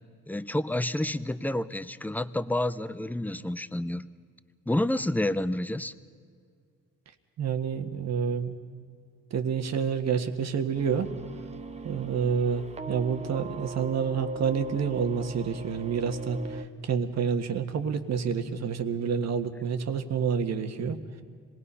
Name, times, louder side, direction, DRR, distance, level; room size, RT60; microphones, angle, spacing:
voice 1, 0.3-4.1 4.7-5.9, left 1 dB, 5° left, 14 dB, 0.6 m, -29 dB
voice 2, 7.4-8.6 9.3-11.1 11.8-21.0, right 6 dB, 60° right, 7 dB, 1.5 m, -28 dB
sound 1, 10.7-16.7, right 2 dB, 20° right, 1.0 m, -40 dB
26.5 x 19.5 x 5.6 m, 2.2 s
cardioid pair, 90°, 30 cm